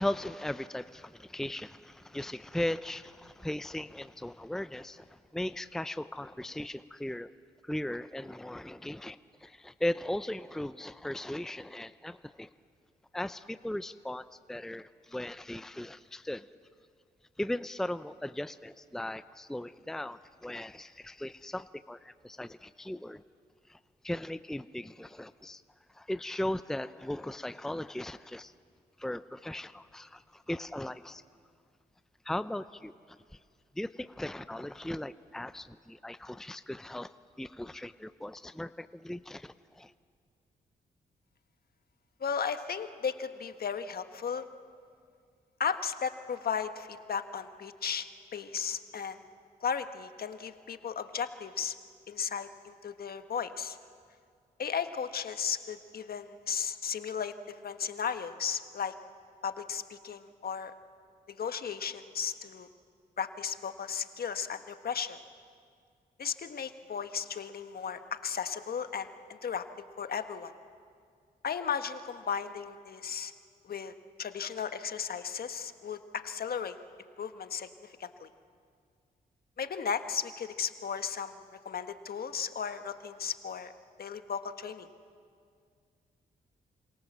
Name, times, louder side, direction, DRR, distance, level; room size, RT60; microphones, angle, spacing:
voice 1, 0.0-5.0 5.3-7.3 7.7-12.5 13.1-16.5 17.4-23.2 23.7-23.8 24.0-25.6 26.0-28.5 29.0-31.2 32.3-32.9 33.8-37.1 37.4-39.9, left 1 dB, 5° left, 13 dB, 0.7 m, -37 dB
voice 2, 42.2-44.5 45.6-49.2 49.6-51.7 52.1-53.8 54.6-58.9 59.4-60.7 61.3-62.7 63.2-65.2 66.2-70.5 71.4-73.3 73.6-76.8 77.2-78.3 79.6-81.4 81.6-83.7 84.0-84.9, left 7 dB, 60° left, 9 dB, 1.5 m, -35 dB
28.0 x 26.0 x 7.4 m, 2.2 s
cardioid pair, 65°, 17 cm